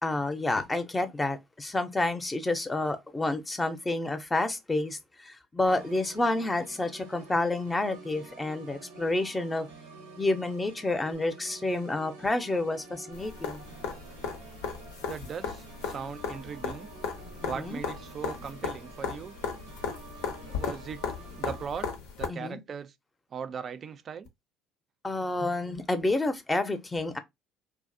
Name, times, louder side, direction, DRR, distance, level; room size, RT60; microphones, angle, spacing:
voice 1, 0.0-5.0 5.2-9.7 10.2-13.6 17.4-17.8 22.3-22.6 25.0-27.2, left 2 dB, 20° left, 0.5 m, -29 dB
Organ, 5.7-21.7, right 3 dB, 90° right, 0.6 m, -49 dB
sound 1, 13.1-22.3 24.3-24.4, left 6 dB, 75° left, 0.5 m, -36 dB
voice 2, 15.0-16.9 17.4-19.4 20.5-21.0 21.4-21.9 22.2-22.9 23.3-24.3, right 6 dB, 45° right, 0.3 m, -38 dB
2.4 x 2.0 x 2.5 m
hypercardioid pair, 70°, 0 cm